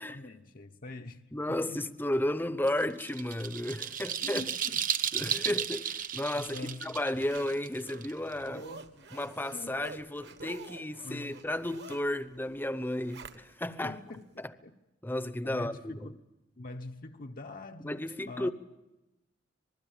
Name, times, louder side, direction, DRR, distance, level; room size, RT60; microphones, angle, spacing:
voice 1, 0.0-1.9 3.9-4.9 5.2-5.5 6.3-7.0 8.5-9.8 11.0-11.4 13.8-14.7 15.4-16.2 16.6-18.5, left 2 dB, 45° left, 0.9 m, -45 dB
voice 2, 1.3-4.4 5.1-6.6 6.8-8.6 9.1-14.0 15.0-16.1 17.8-18.5, left 1 dB, 10° left, 0.8 m, -33 dB
sound 1, 2.7-8.5, right 9 dB, 45° right, 1.1 m, -34 dB
Zipper (clothing), 6.2-13.8 14.2-14.3, right 3 dB, 60° right, 1.6 m, -49 dB
26.0 x 20.5 x 9.0 m
head